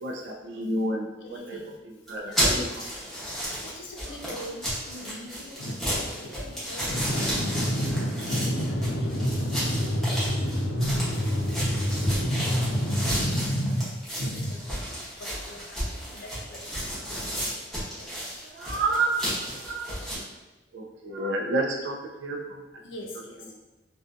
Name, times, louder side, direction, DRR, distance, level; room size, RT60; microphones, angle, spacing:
voice 1, 0.0-2.9 18.4-19.2 19.6-19.9 20.7-22.6, right 2 dB, 70° right, -1 dB, 0.4 m, -30 dB
voice 2, 1.2-1.8 2.2-2.4 3.0-3.1 3.6-16.9 18.0-18.1 22.8-23.5, equal, 85° left, 0 dB, 0.5 m, -30 dB
sound 1, 2.1-20.2, equal, ahead, 0.8 m, -32 dB
2.5 x 2.2 x 2.5 m, 1.1 s
head